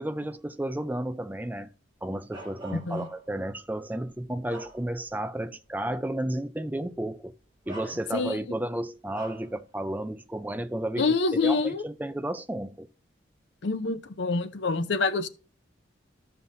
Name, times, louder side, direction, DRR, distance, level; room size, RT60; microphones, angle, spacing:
voice 1, 0.0-1.7 2.0-7.3 7.7-12.9, right 1 dB, 10° right, 0.4 m, -32 dB
Bark, 2.3-3.4 4.0-5.2 5.7-5.8 6.9-7.1 7.6-8.4 9.1-9.5, right 1 dB, 25° right, 2.3 m, -45 dB
voice 2, 2.7-3.1 8.1-8.4 11.0-11.8 13.6-15.3, left 3 dB, 70° left, 0.7 m, -26 dB
14.5 x 5.5 x 2.6 m
head